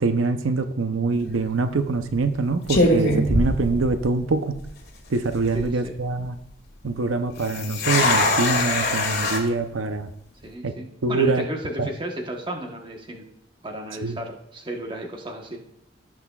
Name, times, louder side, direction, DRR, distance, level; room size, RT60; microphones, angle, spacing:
voice 1, 0.0-4.6 5.1-6.4 6.8-10.1 10.6-10.7 11.0-11.4 11.8-11.9 14.0-14.2, right 3 dB, 85° right, 8 dB, 0.6 m, -24 dB
sound 1, 1.1-1.4 2.2-2.3 2.7-4.3 4.5-4.6 5.3-5.6 7.4-9.4, left 1 dB, 55° left, 2.2 m, -22 dB
voice 2, 5.5-6.0 10.4-13.2 13.6-15.6, right 1 dB, 25° right, 2 dB, 1.1 m, -33 dB
16.5 x 6.1 x 2.4 m, 0.82 s
head